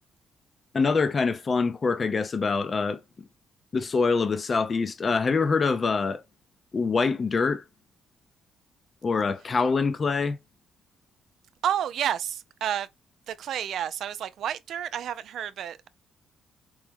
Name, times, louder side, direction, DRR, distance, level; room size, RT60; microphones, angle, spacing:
voice 1, 0.7-3.0 3.7-6.2 6.7-7.6 9.0-10.4, left 4 dB, 35° left, 0.5 m, -25 dB
voice 2, 11.6-12.9 13.3-15.9, right 10 dB, 70° right, 0.4 m, -30 dB
4.7 x 2.1 x 3.4 m
cardioid pair, 90°, 0 cm